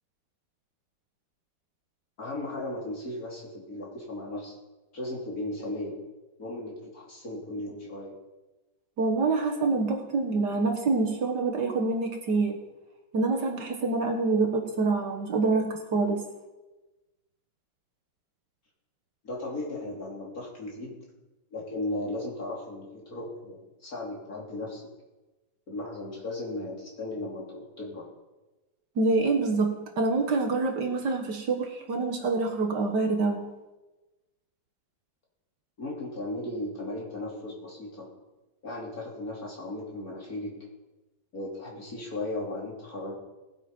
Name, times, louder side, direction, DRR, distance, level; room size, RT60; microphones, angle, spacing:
voice 1, 2.2-4.5 4.9-6.0 6.4-8.1 19.2-21.0 21.5-24.8 25.7-28.0 35.8-38.1 38.6-40.6 41.3-43.1, left 2 dB, 45° left, -2 dB, 3.5 m, -36 dB
voice 2, 9.0-12.6 13.1-16.2 29.0-33.5, right 3 dB, 60° right, 3 dB, 2.0 m, -26 dB
18.0 x 8.3 x 5.4 m, 1.1 s
omnidirectional pair, 2.1 m